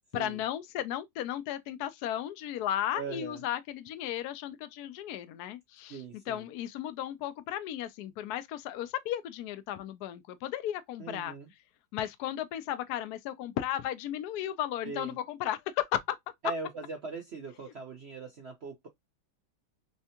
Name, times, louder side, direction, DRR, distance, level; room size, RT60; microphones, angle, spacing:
voice 1, 0.1-6.0 6.3-11.3 11.9-16.2, left 12 dB, 75° left, 0.9 m, -35 dB
voice 2, 2.9-3.4 5.9-6.4 11.0-11.5 14.8-15.2 16.4-18.9, right 4 dB, 85° right, 0.5 m, -40 dB
3.5 x 3.3 x 2.7 m
omnidirectional pair, 2.2 m